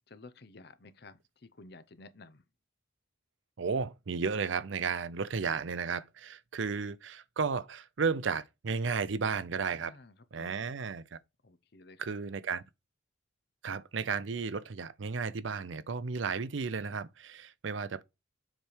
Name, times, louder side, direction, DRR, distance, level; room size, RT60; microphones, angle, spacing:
voice 1, 0.1-2.4 9.7-10.7 11.4-12.2, left 3 dB, 55° left, 0.7 m, -53 dB
voice 2, 3.6-9.9 10.3-11.2 12.0-12.6 13.6-18.0, right 5 dB, 70° right, 0.5 m, -33 dB
7.4 x 3.4 x 4.5 m
head